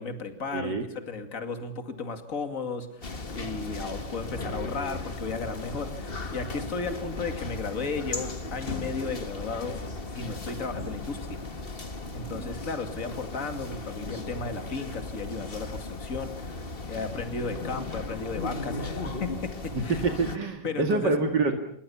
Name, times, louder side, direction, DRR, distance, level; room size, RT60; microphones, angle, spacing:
voice 1, 0.0-9.8 10.1-11.4 12.1-19.5 19.8-19.9 20.6-21.1, left 4 dB, 50° left, 7 dB, 2.8 m, -34 dB
voice 2, 0.5-0.8 12.1-12.5 19.7-19.8 20.2-21.5, right 3 dB, 80° right, 4 dB, 2.7 m, -27 dB
sound 1, 3.0-20.4, left 3 dB, 35° left, 1.9 m, -36 dB
27.5 x 22.0 x 7.1 m, 0.65 s
omnidirectional pair, 1.8 m